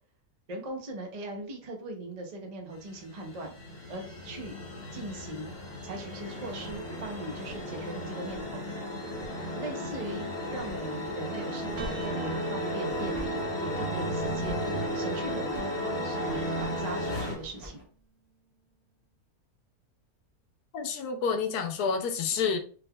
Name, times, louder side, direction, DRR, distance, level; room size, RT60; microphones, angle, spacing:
voice 1, 0.5-3.5 3.9-4.6 4.9-5.5 5.8-8.7 9.6-14.6 14.9-17.8, right 2 dB, 40° right, 2 dB, 0.6 m, -40 dB
sound 1, 2.7-17.4, equal, 30° left, 1.2 m, -34 dB
sound 2, 6.5-8.6 8.9-9.5 9.9-11.2 11.6-12.3 12.9-13.6 14.1-14.7 15.2-15.8 16.2-16.9 17.3-17.9, left 1 dB, 15° right, 1.4 m, -47 dB
Piano, 11.8-16.3 17.3-18.0, right 2 dB, 65° right, 1.0 m, -47 dB
voice 2, 20.7-22.6, left 5 dB, 85° left, 6 dB, 1.2 m, -29 dB
3.4 x 3.2 x 2.2 m, 0.42 s
omnidirectional pair, 1.6 m